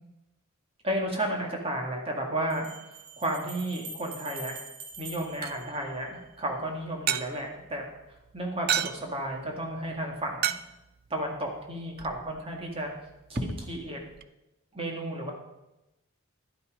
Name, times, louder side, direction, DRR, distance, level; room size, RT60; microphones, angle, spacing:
voice 1, 0.8-2.7 3.2-4.5 5.0-7.9 8.3-10.5 11.1-12.9 13.3-14.0 14.7-15.3, right 1 dB, 25° right, 0 dB, 2.0 m, -32 dB
Bell, 0.9-1.0 2.5-6.4, right 3 dB, 80° right, 2.0 m, -45 dB
sound 1, 4.9-14.3, right 10 dB, 45° right, 0.4 m, -37 dB
11.5 x 8.5 x 5.1 m, 0.95 s
head